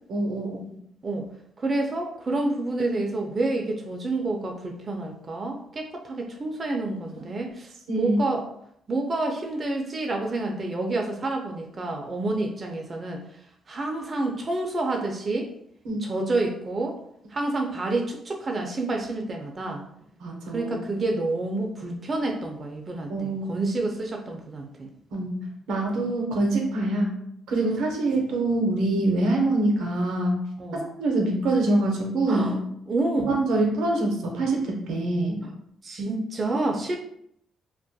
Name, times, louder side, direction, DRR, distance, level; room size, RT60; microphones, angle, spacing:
voice 1, 0.1-0.6 7.9-8.2 15.9-16.0 20.2-20.7 23.1-23.6 25.1-25.3 25.7-27.1 27.5-30.4 30.7-32.5 33.3-35.4, right 2 dB, 85° right, 1 dB, 0.5 m, -25 dB
voice 2, 1.6-7.7 8.0-8.5 8.9-13.2 13.7-15.5 16.0-17.0 17.3-19.8 20.5-24.9 30.6-30.9 32.3-32.6 32.9-33.4 35.4-35.5 35.8-37.0, right 2 dB, 35° right, 2 dB, 0.3 m, -28 dB
2.2 x 2.1 x 2.6 m, 0.71 s
cardioid pair, 90°, 0 cm